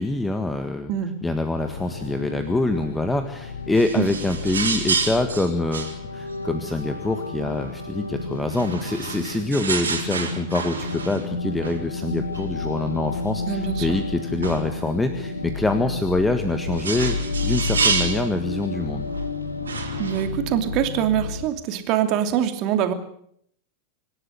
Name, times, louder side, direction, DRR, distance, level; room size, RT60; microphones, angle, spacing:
voice 1, 0.0-0.9 1.2-19.1, left 2 dB, 10° left, 8 dB, 1.7 m, -25 dB
sound 1, 1.5-21.5, left 3 dB, 75° left, 1.7 m, -31 dB
sound 2, 3.7-7.3 8.4-11.3 11.6-11.8 12.3-12.4 13.1-13.2 13.6-13.7 14.4-14.7 16.3-18.3 19.1-19.2 19.6-20.3, right 5 dB, 70° right, 3.9 m, -29 dB
voice 2, 13.5-13.9 20.0-22.9, right 10 dB, 40° right, 7 dB, 2.7 m, -24 dB
26.0 x 12.5 x 9.7 m, 0.69 s
figure-of-eight pair, 90°, 0 cm